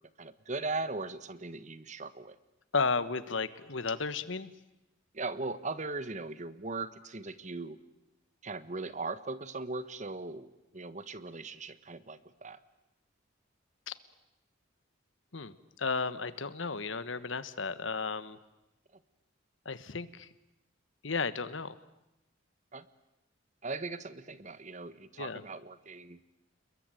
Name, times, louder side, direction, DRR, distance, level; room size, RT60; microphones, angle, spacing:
voice 1, 0.2-2.4 5.1-7.8 8.4-12.6 22.7-22.9 23.6-26.2, right 3 dB, 40° right, 14 dB, 1.3 m, -39 dB
voice 2, 2.7-4.5 13.9-14.0 15.3-18.4 19.6-20.3 21.0-21.8 25.2-25.4, left 4 dB, 75° left, 14 dB, 1.3 m, -33 dB
29.5 x 21.5 x 9.2 m, 0.94 s
head